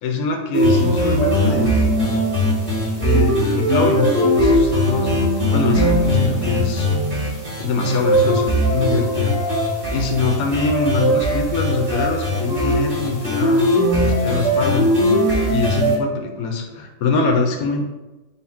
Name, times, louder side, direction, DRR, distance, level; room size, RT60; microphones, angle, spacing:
voice 1, 0.0-2.0 3.0-5.2 5.5-6.9 7.6-9.4 9.9-15.1 15.5-17.8, left 4 dB, 85° left, 2 dB, 1.1 m, -23 dB
sound 1, 0.5-16.0, equal, 50° right, 1.8 m, -19 dB
5.5 x 2.0 x 4.2 m, 1.1 s
omnidirectional pair, 1.5 m